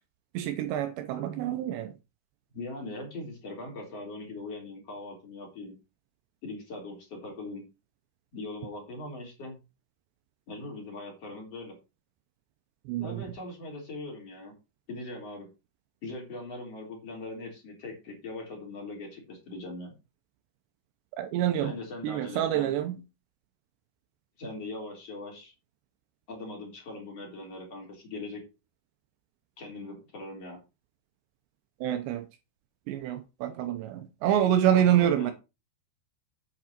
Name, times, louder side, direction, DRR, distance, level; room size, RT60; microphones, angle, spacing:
voice 1, 0.3-1.9 12.9-13.2 21.2-21.7 22.0-23.0 31.8-32.3 32.9-35.3, right 10 dB, 80° right, 2.9 m, -27 dB
voice 2, 2.5-5.7 6.4-7.6 8.3-9.6 10.5-11.7 13.0-14.5 14.9-15.5 16.0-19.9 21.6-22.7 24.4-25.5 26.3-28.4 29.6-30.6 34.7-35.3, left 2 dB, 35° left, 4.3 m, -40 dB
8.5 x 8.3 x 4.3 m
omnidirectional pair, 5.2 m